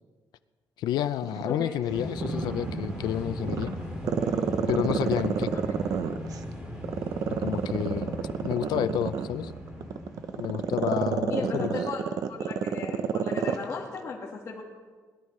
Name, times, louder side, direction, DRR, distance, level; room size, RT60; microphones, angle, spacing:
voice 1, 0.8-3.7 4.7-5.5 7.3-9.5 10.4-11.7, left 11 dB, 85° left, 13 dB, 0.5 m, -30 dB
Growling, 1.2-3.0 3.4-6.4 6.8-13.7 14.0-14.1, right 7 dB, 55° right, 0.7 m, -29 dB
voice 2, 1.5-1.8 5.5-5.6 11.3-12.0 12.3-14.6, left 5 dB, 40° left, -5 dB, 1.6 m, -36 dB
sound 1, 1.9-11.9, equal, 15° right, 2.2 m, -38 dB
21.0 x 12.5 x 3.2 m, 1.5 s
cardioid pair, 155°, 7 cm